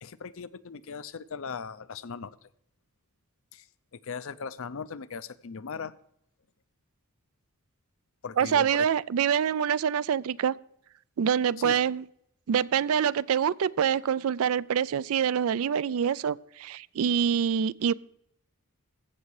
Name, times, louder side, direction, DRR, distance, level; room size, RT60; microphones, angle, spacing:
voice 1, 0.0-2.5 3.5-3.7 4.0-5.9 8.2-8.9 11.6-11.8, left 5 dB, 60° left, 0.5 m, -38 dB
voice 2, 8.4-10.6 11.2-12.0 12.5-17.9, right 8 dB, 65° right, 0.4 m, -25 dB
15.5 x 6.5 x 4.7 m
head